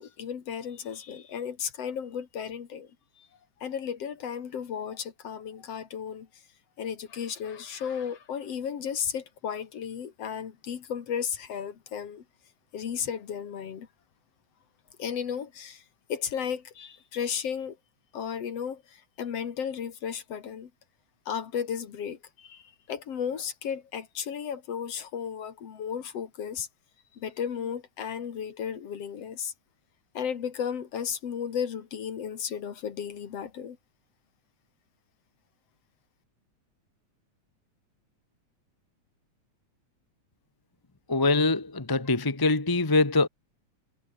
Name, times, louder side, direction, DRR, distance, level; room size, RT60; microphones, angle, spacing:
voice 1, 0.0-2.9 3.2-3.3 3.6-6.3 6.8-12.2 12.7-13.9 15.0-15.8 16.1-17.8 18.1-20.7 21.3-26.7 27.1-29.5 30.1-33.8, left 8 dB, 55° left, 2.8 m, -34 dB
voice 2, 41.1-43.3, left 3 dB, 15° left, 0.9 m, -23 dB
omnidirectional pair, 3.4 m